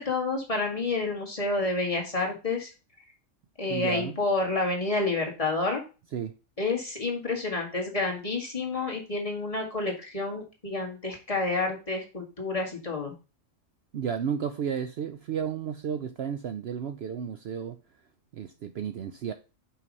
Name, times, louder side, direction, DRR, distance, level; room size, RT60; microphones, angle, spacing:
voice 1, 0.0-2.7 3.6-5.8 6.6-13.1, left 3 dB, 25° left, 2.0 m, -29 dB
voice 2, 3.7-4.2 6.1-6.3 13.9-17.8 18.3-19.3, right 7 dB, 60° right, 0.8 m, -32 dB
5.7 x 5.0 x 5.3 m
omnidirectional pair, 1.3 m